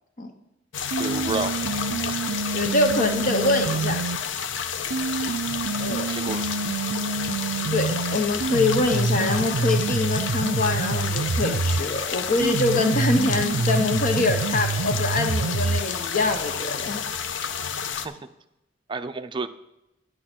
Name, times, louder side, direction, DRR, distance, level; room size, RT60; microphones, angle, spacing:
sound 1, 0.7-18.1, left 7 dB, 70° left, 0.6 m, -30 dB
sound 2, 0.9-4.2 4.9-11.9 12.4-15.9, right 4 dB, 75° right, 0.5 m, -27 dB
voice 1, 1.0-1.6 6.1-6.4 18.0-18.1 18.9-19.5, right 3 dB, 25° right, 9 dB, 0.5 m, -29 dB
voice 2, 2.5-4.0 5.8-6.1 7.7-17.0, left 2 dB, 45° left, 6 dB, 0.8 m, -24 dB
9.8 x 6.5 x 6.0 m, 0.89 s
head